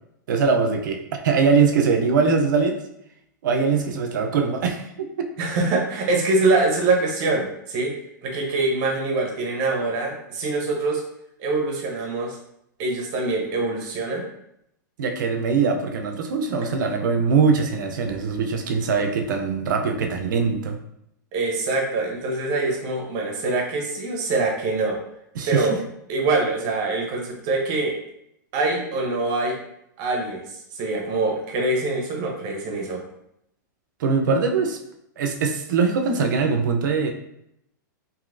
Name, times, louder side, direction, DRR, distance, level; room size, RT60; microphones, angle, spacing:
voice 1, 0.3-2.8 3.4-5.3 15.0-20.8 25.3-25.8 34.0-34.8 35.2-37.1, right 5 dB, 75° right, 5 dB, 0.5 m, -22 dB
voice 2, 5.4-7.9 8.2-11.0 11.4-12.4 12.8-14.2 21.3-25.0 25.5-25.8 26.1-27.9 28.5-29.6 30.0-30.4 30.7-33.0, right 3 dB, 40° right, 1 dB, 0.8 m, -24 dB
3.0 x 2.7 x 2.5 m, 0.78 s
hypercardioid pair, 140°, 10 cm